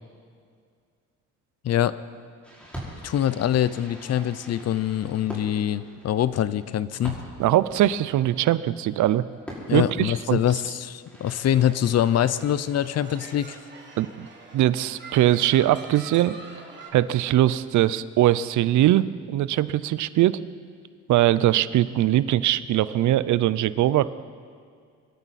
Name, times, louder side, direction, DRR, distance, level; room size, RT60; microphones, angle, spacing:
Fireworks, 2.4-12.6, equal, 5° left, 5.2 m, -44 dB
voice 1, 3.0-7.2 9.7-13.6, left 10 dB, 55° left, 16 dB, 0.7 m, -24 dB
voice 2, 7.4-9.2 9.7-10.4 14.0-14.3 14.5-16.4 16.9-20.4 21.1-24.1, right 13 dB, 75° right, 16 dB, 0.6 m, -21 dB
sound 1, 11.5-16.9, right 3 dB, 35° right, 2.9 m, -45 dB
24.0 x 12.5 x 4.2 m, 2.2 s
cardioid pair, 90°, 30 cm